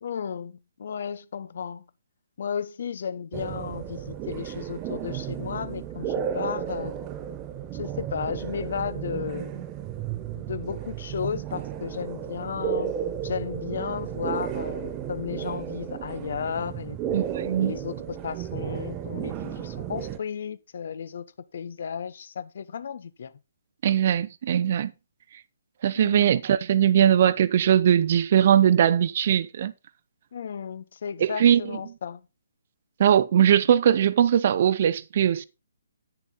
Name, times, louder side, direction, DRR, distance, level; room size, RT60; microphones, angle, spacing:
voice 1, 0.0-1.8 2.4-6.9 7.7-9.7 10.3-12.9 13.2-17.0 17.6-17.9 18.2-21.3 21.5-23.3 25.9-26.4 30.3-32.2, left 7 dB, 55° left, 1.0 m, -34 dB
sound 1, 3.3-20.2, right 9 dB, 25° right, 1.0 m, -33 dB
voice 2, 17.1-17.7 23.8-24.9 25.8-29.7 31.2-31.6 33.0-35.4, right 9 dB, 45° right, 0.6 m, -20 dB
10.0 x 7.0 x 4.0 m
figure-of-eight pair, 135°, 0 cm